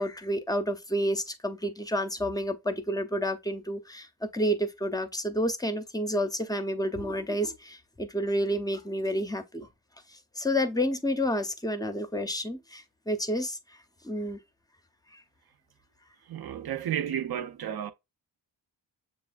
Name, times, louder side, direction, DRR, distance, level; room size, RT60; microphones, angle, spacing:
voice 1, 0.0-9.7 10.1-13.6 14.0-14.4 15.1-15.2, equal, 10° left, 0.6 m, -30 dB
voice 2, 16.3-17.9, right 9 dB, 55° right, 0.7 m, -32 dB
6.8 x 2.4 x 2.4 m
cardioid pair, 80°, 45 cm